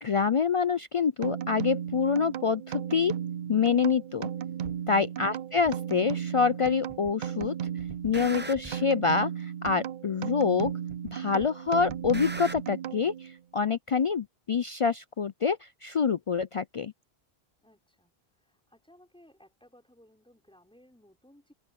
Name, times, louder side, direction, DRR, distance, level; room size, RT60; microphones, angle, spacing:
voice 1, 0.0-3.1 3.5-4.3 4.9-7.6 8.0-10.7 11.1-16.9, left 5 dB, 55° left, 0.3 m, -26 dB
sound 1, 1.2-13.4, right 9 dB, 60° right, 0.6 m, -35 dB
sound 2, 4.6-4.8 5.6-5.7 6.6-7.1 7.4-8.9 9.6-9.7 10.6-11.1 11.4-12.6, right 2 dB, 15° right, 0.5 m, -42 dB
voice 2, 4.9-5.3 17.6-21.5, left 1 dB, 5° left, 5.8 m, -60 dB
omnidirectional pair, 1.1 m